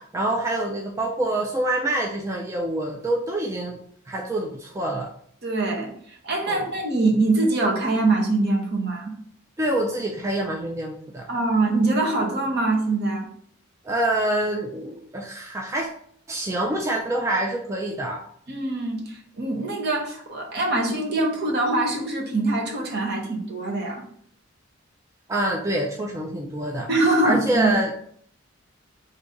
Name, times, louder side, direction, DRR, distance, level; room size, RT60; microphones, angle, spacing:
voice 1, 0.0-5.1 6.5-6.7 9.6-11.3 13.8-15.9 16.3-18.2 25.3-26.9 27.2-27.9, right 1 dB, 15° right, 0 dB, 0.3 m, -26 dB
voice 2, 5.4-9.1 11.3-13.3 18.5-24.0 26.9-27.7, right 2 dB, 55° right, 0 dB, 0.9 m, -23 dB
3.8 x 2.7 x 3.7 m, 0.64 s
head